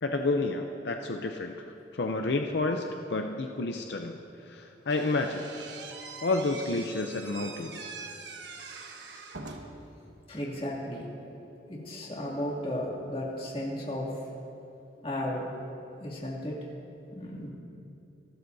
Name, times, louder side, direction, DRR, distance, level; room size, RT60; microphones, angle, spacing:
voice 1, 0.0-1.7 1.9-2.8 3.1-4.2 4.5-5.5 6.2-7.9, left 2 dB, 75° left, 4 dB, 0.6 m, -30 dB
Slam / Squeak, 4.9-9.9, right 4 dB, 85° right, 1.2 m, -43 dB
voice 2, 10.3-11.2 11.7-14.2 15.0-15.6 16.0-16.6 17.1-17.5, left 1 dB, 35° left, -3 dB, 2.5 m, -34 dB
27.5 x 12.5 x 2.7 m, 2.8 s
head